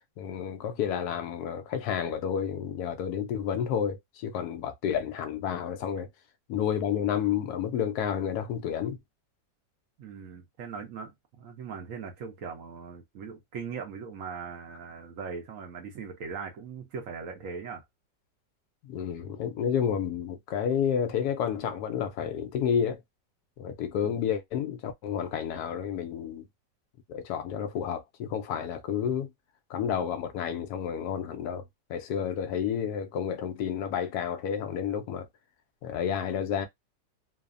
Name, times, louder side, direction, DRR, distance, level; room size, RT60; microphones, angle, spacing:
voice 1, 0.2-6.1 6.5-9.0 18.9-23.0 23.6-26.4 27.1-29.3 29.7-31.6 31.9-35.3 35.8-36.7, left 8 dB, 70° left, 1.0 m, -30 dB
voice 2, 10.0-17.8, right 5 dB, 65° right, 0.8 m, -40 dB
3.1 x 2.0 x 2.4 m
omnidirectional pair, 1.9 m